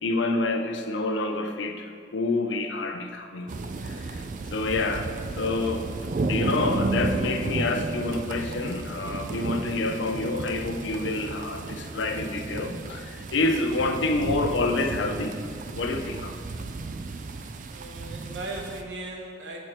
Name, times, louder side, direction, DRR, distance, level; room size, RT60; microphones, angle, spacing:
voice 1, 0.0-3.6 3.8-4.2 4.5-5.1 5.4-5.9 6.3-15.4 15.7-16.4, left 2 dB, 85° left, 5 dB, 0.5 m, -28 dB
sound 1, 3.5-18.8, right 3 dB, 45° right, 0.3 m, -33 dB
voice 2, 17.7-19.6, right 2 dB, 75° right, 0 dB, 1.0 m, -37 dB
6.6 x 4.5 x 4.4 m, 2.3 s
head